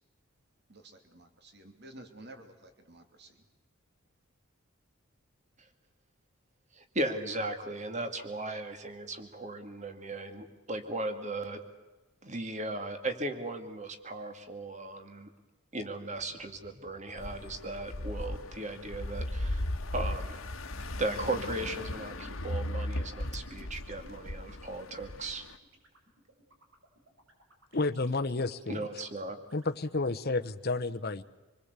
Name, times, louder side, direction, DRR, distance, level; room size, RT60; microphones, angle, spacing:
voice 1, 0.7-3.4, right 1 dB, 50° right, 6 dB, 3.0 m, -52 dB
voice 2, 6.7-11.6 12.2-15.3 15.7-20.4 21.0-25.5 28.7-29.4, right 2 dB, 35° right, 8 dB, 2.3 m, -37 dB
sound 1, 16.1-30.4, right 1 dB, 70° right, 5.9 m, -60 dB
sound 2, 17.2-25.6, left 1 dB, 75° left, 1.5 m, -37 dB
voice 3, 27.7-28.9 29.5-31.2, left 3 dB, 45° left, 9 dB, 1.0 m, -31 dB
27.5 x 21.0 x 8.2 m, 1.2 s
head